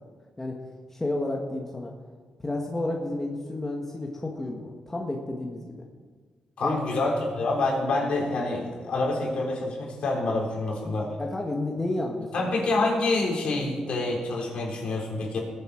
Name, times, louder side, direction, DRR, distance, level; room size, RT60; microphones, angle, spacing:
voice 1, 0.9-1.9 2.4-5.8 6.6-6.8 11.2-12.7, left 2 dB, 15° left, 0 dB, 1.3 m, -31 dB
voice 2, 6.6-11.1 12.3-15.4, left 2 dB, 60° left, -2 dB, 4.1 m, -27 dB
20.0 x 8.0 x 4.9 m, 1.5 s
wide cardioid pair, 130°, 2 cm